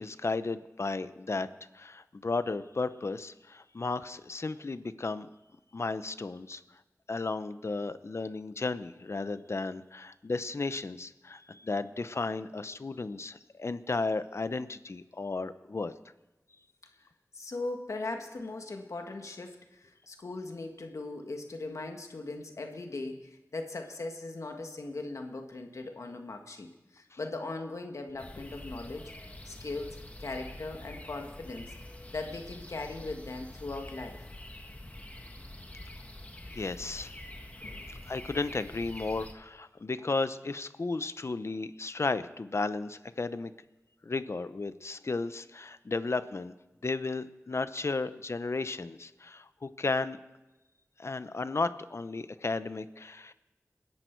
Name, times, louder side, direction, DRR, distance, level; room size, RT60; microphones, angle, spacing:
voice 1, 0.0-1.5 1.7-5.3 5.7-6.6 7.1-15.9 27.1-27.2 36.5-37.1 37.9-43.5 44.0-46.5 46.8-50.2 51.0-53.3, left 3 dB, 60° left, 13 dB, 0.8 m, -34 dB
voice 2, 17.3-29.1 29.4-31.7 32.1-34.2 37.6-37.9, left 2 dB, 85° left, 4 dB, 1.7 m, -39 dB
sound 1, 28.2-39.3, left 1 dB, 25° left, 1.7 m, -46 dB
28.0 x 10.5 x 4.6 m, 1.0 s
wide cardioid pair, 60°, 5 cm